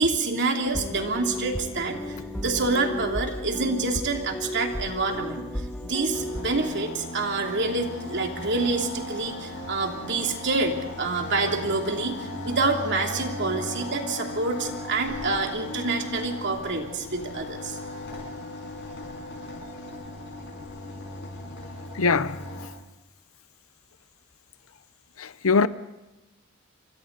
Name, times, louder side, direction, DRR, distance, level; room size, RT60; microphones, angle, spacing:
voice 1, 0.0-5.4 5.8-12.2 12.4-17.8, right 3 dB, 55° right, 3.0 m, -27 dB
sound 1, 0.5-6.7, left 1 dB, 5° left, 1.3 m, -34 dB
sound 2, 6.1-22.7, left 2 dB, 60° left, 6.9 m, -37 dB
voice 2, 21.9-22.4 25.2-25.7, left 4 dB, 80° left, 0.8 m, -22 dB
28.5 x 25.0 x 4.0 m
head